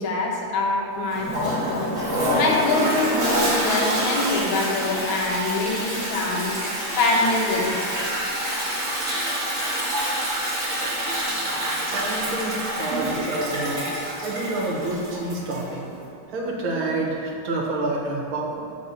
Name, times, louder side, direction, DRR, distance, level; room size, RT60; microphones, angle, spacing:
voice 1, 0.0-1.9 2.4-6.5 7.0-7.8, left 2 dB, 75° left, -1 dB, 1.8 m, -24 dB
Toilet flush, 1.1-15.7, right 1 dB, 40° right, 1.9 m, -27 dB
voice 2, 11.2-15.9 16.3-18.6, right 2 dB, 80° right, -2 dB, 2.0 m, -28 dB
7.1 x 4.6 x 5.4 m, 2.5 s
omnidirectional pair, 2.3 m